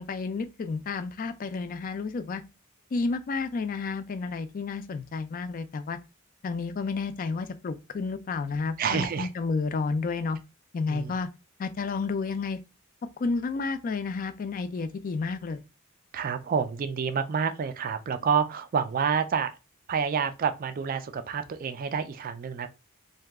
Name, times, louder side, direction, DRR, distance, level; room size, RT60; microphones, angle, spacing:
voice 1, 0.0-2.4 2.9-6.0 6.4-10.4 10.7-11.3 11.6-12.6 13.2-15.6, left 4 dB, 40° left, 0.3 m, -31 dB
voice 2, 8.8-9.3 10.9-11.1 16.1-19.5 19.9-22.7, right 6 dB, 40° right, 0.3 m, -28 dB
2.7 x 2.2 x 3.4 m
head